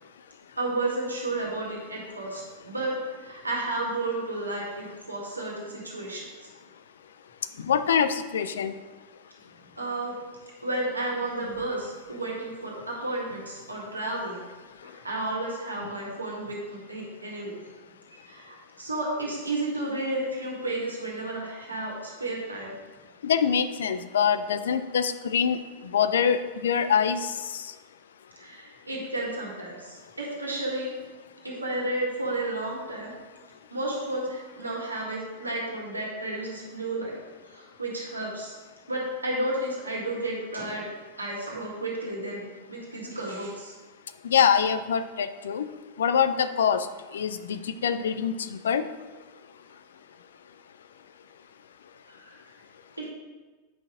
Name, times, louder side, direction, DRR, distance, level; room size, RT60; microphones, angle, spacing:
voice 1, 0.6-6.3 9.8-10.2 10.6-14.4 14.8-17.6 18.2-22.7 28.4-30.9 31.4-33.1 33.7-37.2 37.4-38.6 38.9-40.9 41.2-42.4 42.7-43.7 52.1-52.4 53.0-53.1, right 2 dB, 80° right, -3 dB, 1.8 m, -32 dB
voice 2, 7.7-8.7 23.2-25.6 25.9-27.3 44.2-45.6 46.0-46.9 47.1-48.3 48.6-48.8, left 7 dB, 65° left, 12 dB, 0.4 m, -24 dB
8.5 x 5.7 x 3.7 m, 1.3 s
figure-of-eight pair, 90°, 0 cm